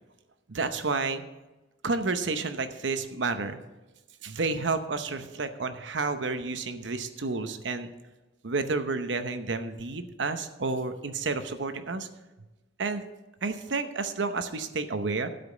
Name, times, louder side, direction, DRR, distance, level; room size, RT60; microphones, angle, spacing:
voice 1, 0.5-1.2 1.8-3.6 4.2-7.9 8.4-12.1 12.8-13.0 13.4-15.3, right 3 dB, 70° right, 9 dB, 0.8 m, -30 dB
12.5 x 5.2 x 7.1 m, 1.1 s
head